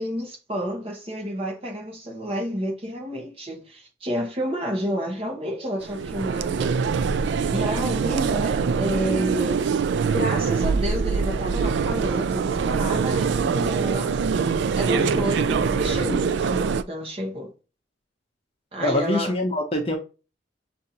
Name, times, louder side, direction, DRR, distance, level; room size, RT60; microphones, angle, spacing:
voice 1, 0.0-6.7 7.5-9.7 10.1-14.2 14.8-17.5 18.7-19.3, equal, 30° right, 1.0 m, -30 dB
sound 1, 5.8-16.8, right 5 dB, 70° right, 0.3 m, -24 dB
voice 2, 14.9-15.3 15.9-16.2 18.8-20.0, left 1 dB, 30° left, 0.7 m, -25 dB
6.4 x 2.6 x 2.8 m
head